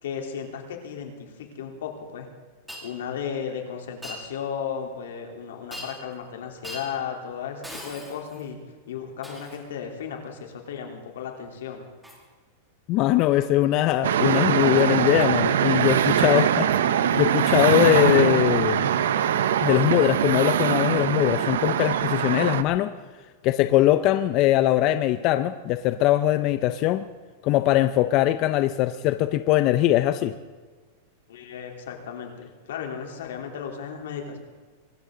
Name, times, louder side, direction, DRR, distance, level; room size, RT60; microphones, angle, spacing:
voice 1, 0.0-2.3 2.8-8.6 8.9-11.9 31.3-34.4, left 7 dB, 85° left, 2 dB, 3.5 m, -35 dB
Shatter, 2.7-2.9 4.0-4.2 5.7-6.1 6.6-6.9 7.6-8.5 9.2-9.7 12.0-12.3 13.2-13.4 14.1-14.3 17.1-17.2 18.3-18.4, equal, ahead, 2.4 m, -40 dB
voice 2, 12.9-18.8 19.6-22.9 23.4-27.0 27.4-30.3, left 14 dB, 35° left, 11 dB, 0.5 m, -21 dB
sound 1, 14.0-22.6, right 9 dB, 90° right, 0.8 m, -22 dB
23.5 x 14.0 x 3.9 m, 1.4 s
supercardioid pair, 165°, 0 cm